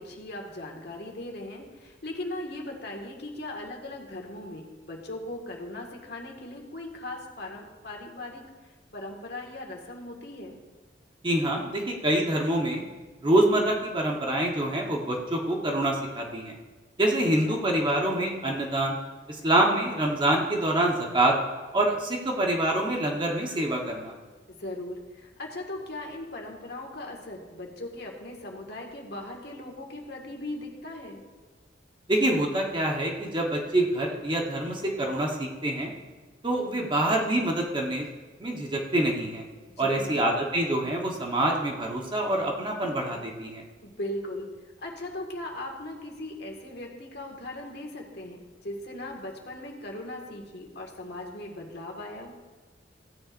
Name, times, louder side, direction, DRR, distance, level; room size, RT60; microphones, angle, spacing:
voice 1, 0.0-8.4 8.9-10.6 17.5-17.7 24.5-31.2 39.7-40.2 43.8-44.5 44.8-52.3, left 1 dB, 60° left, 0 dB, 1.8 m, -38 dB
voice 2, 11.2-12.8 13.2-16.5 17.0-19.0 19.3-21.4 21.7-24.1 32.1-35.9 36.4-38.1 38.4-39.4 39.8-43.6, right 1 dB, 25° right, 0 dB, 1.1 m, -26 dB
15.5 x 9.8 x 2.6 m, 1.3 s
head